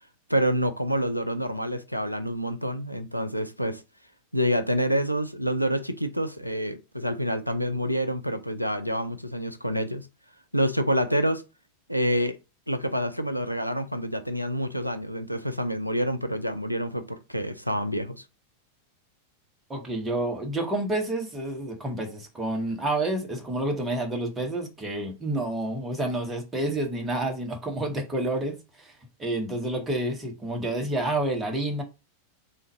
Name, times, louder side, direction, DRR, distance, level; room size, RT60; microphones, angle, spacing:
voice 1, 0.3-3.8 4.3-10.1 10.5-11.5 11.9-12.4 12.7-18.2, equal, 90° left, 0.4 m, -27 dB
voice 2, 19.7-28.9 29.2-31.8, right 1 dB, 15° right, 1.1 m, -29 dB
3.8 x 2.5 x 4.1 m
figure-of-eight pair, 90°, 0 cm